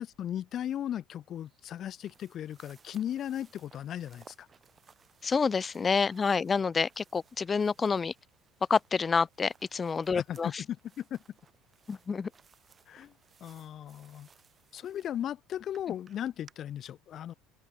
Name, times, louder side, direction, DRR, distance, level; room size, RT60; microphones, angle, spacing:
voice 1, 0.0-4.5 10.1-11.2 12.9-13.1 13.4-14.3 14.7-17.3, left 10 dB, 45° left, 0.7 m, -37 dB
sound 1, 1.4-16.5, right 6 dB, 25° right, 5.0 m, -62 dB
voice 2, 5.2-8.1 8.7-10.6 11.9-12.3, left 5 dB, 25° left, 0.3 m, -28 dB
open air
supercardioid pair, 115°, 0 cm